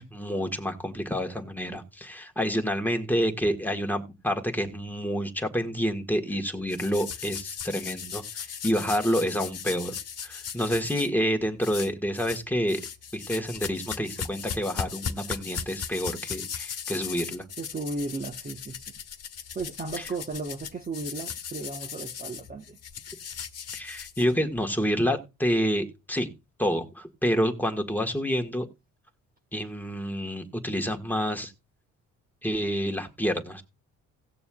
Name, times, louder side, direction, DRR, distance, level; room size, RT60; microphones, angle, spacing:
voice 1, 0.0-10.0 10.2-12.8 13.1-17.5 23.7-26.3 26.6-28.7 29.5-31.5 32.4-33.6, equal, 5° left, 1.6 m, -28 dB
sound 1, 6.7-11.1 11.6-12.4 12.7-24.6, left 7 dB, 55° left, 1.2 m, -37 dB
voice 2, 17.6-19.0 19.5-22.8, right 3 dB, 30° right, 1.1 m, -35 dB
18.0 x 6.8 x 2.3 m
cardioid pair, 90°, 30 cm